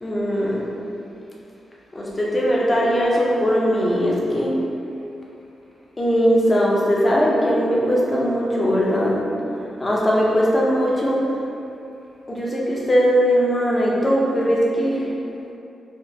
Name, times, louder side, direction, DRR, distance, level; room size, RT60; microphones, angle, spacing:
voice 1, 0.0-0.6 1.9-4.5 6.0-9.2 9.8-11.3 12.3-15.1, equal, 20° left, -5 dB, 0.5 m, -20 dB
2.7 x 2.3 x 3.3 m, 2.7 s
wide cardioid pair, 135°, 0 cm